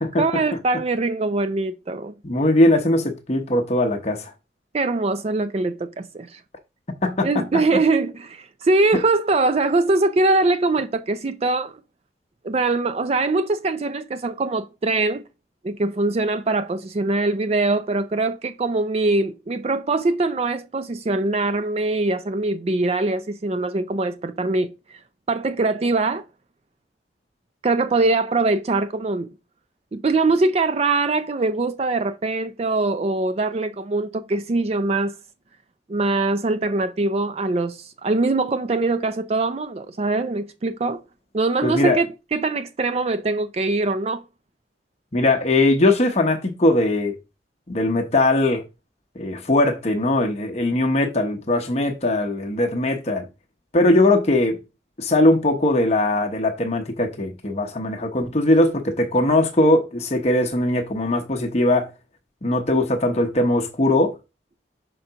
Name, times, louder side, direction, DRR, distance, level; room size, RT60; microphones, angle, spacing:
voice 1, 0.2-2.1 4.7-6.4 7.2-11.8 12.4-15.2 15.6-25.0 25.3-26.2 27.6-29.3 29.9-35.1 35.9-41.0 41.3-44.2, right 3 dB, 35° right, 0.4 m, -22 dB
voice 2, 2.2-4.3 7.0-7.4 41.6-42.0 45.1-47.1 47.7-48.6 49.1-53.3 53.7-54.6 55.0-61.9 62.4-64.2, left 1 dB, 35° left, 0.9 m, -20 dB
5.7 x 3.9 x 5.7 m
head